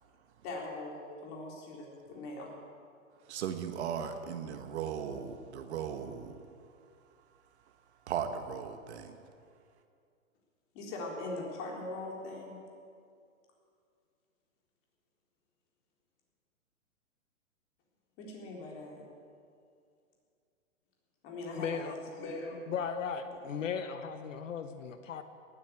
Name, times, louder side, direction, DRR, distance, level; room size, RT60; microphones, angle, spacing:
voice 1, 0.4-2.5 10.7-12.6 18.2-19.0 21.2-22.6 23.2-23.3, left 2 dB, 30° left, -1 dB, 3.9 m, -41 dB
voice 2, 3.3-6.4 8.1-9.2, right 8 dB, 50° right, 7 dB, 1.5 m, -37 dB
voice 3, 21.5-21.9 22.5-25.2, left 6 dB, 65° left, 9 dB, 1.1 m, -37 dB
18.5 x 8.8 x 8.3 m, 2.4 s
hypercardioid pair, 140°, 41 cm